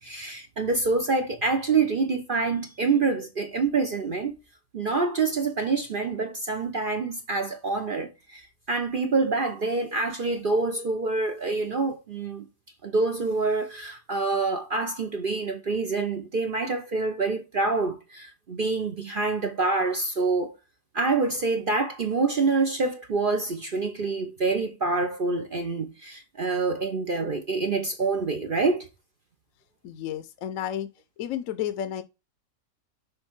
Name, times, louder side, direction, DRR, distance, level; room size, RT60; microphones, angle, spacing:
voice 1, 0.0-4.3 4.7-12.5 12.8-20.6 20.9-28.9, right 3 dB, 45° right, 0.8 m, -26 dB
voice 2, 29.8-30.9 31.2-32.0, left 10 dB, 70° left, 1.0 m, -31 dB
6.4 x 3.5 x 4.5 m
omnidirectional pair, 1.5 m